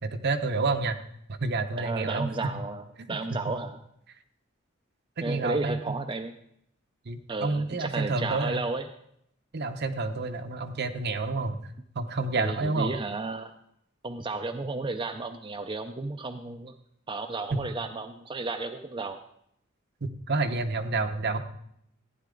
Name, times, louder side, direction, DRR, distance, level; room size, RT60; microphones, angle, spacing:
voice 1, 0.0-1.0 1.3-2.3 3.1-3.5 5.2-5.8 7.0-8.6 9.5-12.9 17.5-17.6 20.0-21.4, right 3 dB, 55° right, 8 dB, 0.8 m, -29 dB
voice 2, 1.8-3.8 5.2-6.3 7.3-8.9 12.4-13.5 14.0-16.7 17.1-19.2, right 3 dB, 25° right, 5 dB, 0.5 m, -33 dB
15.0 x 9.5 x 3.8 m, 0.73 s
head